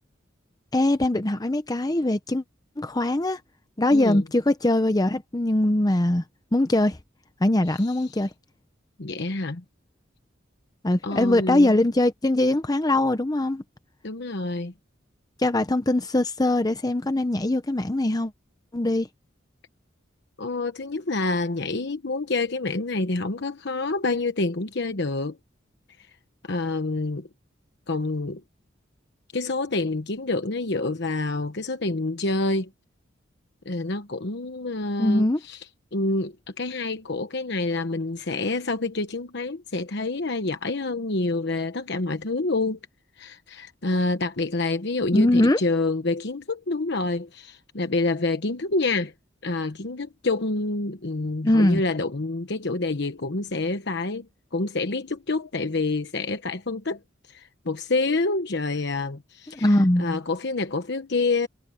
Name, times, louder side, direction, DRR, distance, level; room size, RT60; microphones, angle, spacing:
voice 1, 0.7-2.4 2.8-3.4 3.8-6.2 6.5-7.0 7.4-8.3 10.8-13.6 15.4-18.3 18.7-19.1 35.0-35.4 45.1-45.6 51.4-51.8 59.6-60.2, left 1 dB, 20° left, 0.8 m, -21 dB
voice 2, 3.9-4.2 7.7-8.0 9.0-9.6 11.0-11.8 14.0-14.7 20.4-25.4 26.4-27.3 27.9-28.4 29.3-32.7 33.6-35.7 35.9-42.8 43.2-49.1 49.4-57.0 57.3-61.5, left 3 dB, 60° left, 1.1 m, -27 dB
head